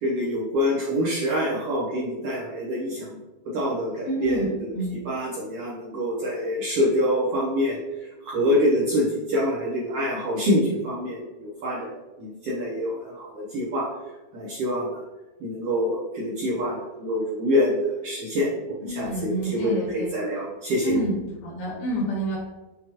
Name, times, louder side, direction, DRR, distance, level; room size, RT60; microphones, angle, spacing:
voice 1, 0.0-3.2 3.5-13.9 14.3-15.0 15.4-21.0, equal, 75° right, -6 dB, 1.4 m, -26 dB
voice 2, 4.1-4.9 18.8-20.1 20.8-21.2 21.4-22.4, right 1 dB, 85° left, -5 dB, 2.8 m, -28 dB
6.0 x 2.3 x 2.9 m, 1.1 s
omnidirectional pair, 3.4 m